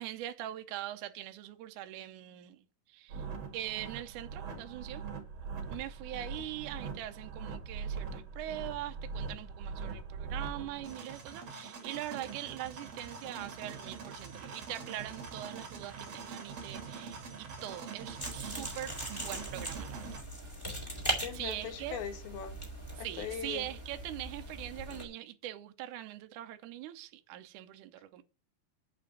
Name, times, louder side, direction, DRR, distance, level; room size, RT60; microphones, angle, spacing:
voice 1, 0.0-3.3 3.5-5.1 5.7-20.1 21.3-22.1 23.0-28.2, right 13 dB, 75° right, 1.8 m, -42 dB
sound 1, 3.1-20.2, right 5 dB, 50° right, 2.7 m, -43 dB
sound 2, 18.2-25.1, right 1 dB, 10° left, 2.5 m, -40 dB
voice 2, 21.2-22.6 23.0-23.6, left 8 dB, 75° left, 3.3 m, -40 dB
8.3 x 5.0 x 6.7 m
omnidirectional pair, 4.4 m